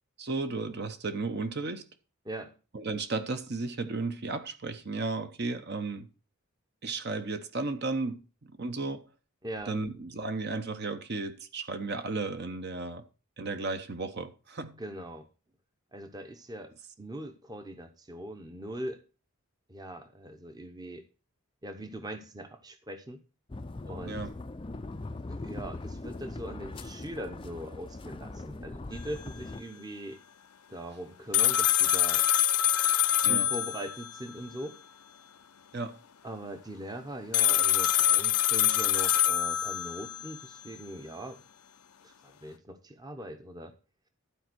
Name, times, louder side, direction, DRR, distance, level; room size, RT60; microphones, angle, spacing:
voice 1, 0.2-1.9 2.7-6.1 6.8-8.2 8.6-9.1 9.7-13.1 13.4-14.8 24.1-24.3 33.2-33.5 35.7-36.0, right 3 dB, 45° right, 0.8 m, -34 dB
voice 2, 9.4-9.8 14.8-15.3 15.9-16.7 17.0-19.0 19.7-21.0 21.6-23.2 23.8-24.2 25.2-30.2 30.7-32.3 33.2-34.8 36.2-41.4 42.0-43.7, right 1 dB, 15° right, 0.8 m, -41 dB
sound 1, 23.5-29.6, left 2 dB, 20° left, 0.4 m, -41 dB
sound 2, 31.3-34.2 37.3-40.3, left 12 dB, 85° left, 0.6 m, -25 dB
12.0 x 4.4 x 6.1 m
head